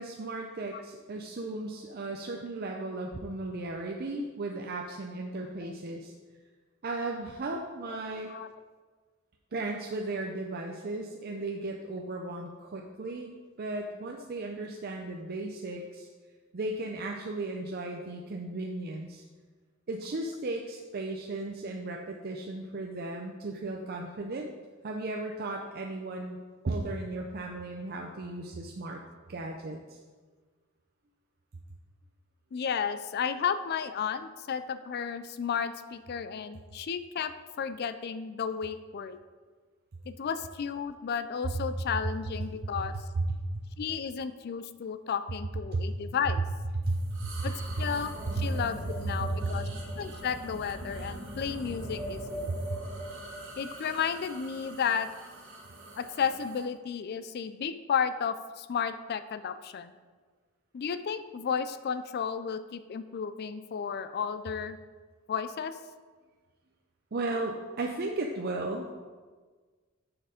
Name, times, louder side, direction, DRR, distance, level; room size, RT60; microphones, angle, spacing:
voice 1, 0.0-6.1 6.8-8.3 9.5-13.3 13.6-16.1 16.5-19.2 19.9-24.5 24.8-26.4 26.6-29.0 29.3-30.0 43.1-43.6 45.7-45.8 46.9-47.5 52.5-52.6 67.1-68.9, right 2 dB, 50° right, 1 dB, 0.5 m, -35 dB
voice 2, 32.5-37.3 37.6-39.2 40.1-42.9 43.8-46.4 47.4-49.7 50.0-52.6 53.6-55.1 56.0-59.9 60.7-64.8 65.3-65.8, left 7 dB, 50° left, 11 dB, 0.4 m, -33 dB
Whispering Man, 46.8-56.6, right 1 dB, 65° right, 1.6 m, -41 dB
6.7 x 5.8 x 5.0 m, 1.4 s
head